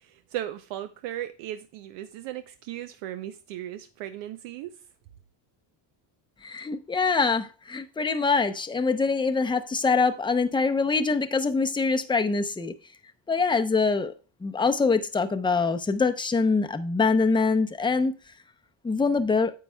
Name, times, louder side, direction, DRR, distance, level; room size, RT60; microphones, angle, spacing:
voice 1, 0.0-4.7, right 12 dB, 90° right, 0.7 m, -36 dB
voice 2, 6.4-12.7 13.3-14.1 14.4-18.1 18.8-19.5, left 4 dB, 10° left, 0.6 m, -24 dB
9.4 x 7.4 x 2.2 m
cardioid pair, 105°, 50 cm